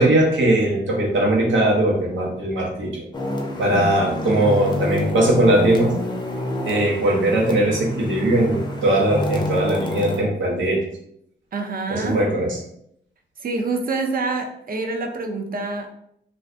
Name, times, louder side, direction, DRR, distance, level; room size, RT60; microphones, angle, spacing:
voice 1, 0.0-3.1 3.6-6.0 6.6-10.9 11.9-12.6, right 1 dB, 80° right, -2 dB, 1.0 m, -19 dB
sound 1, 3.1-10.2, left 1 dB, 20° left, 0.5 m, -28 dB
voice 2, 11.5-12.2 13.4-15.9, right 3 dB, 50° right, 5 dB, 0.5 m, -26 dB
2.5 x 2.5 x 3.3 m, 0.72 s
wide cardioid pair, 125°, 20 cm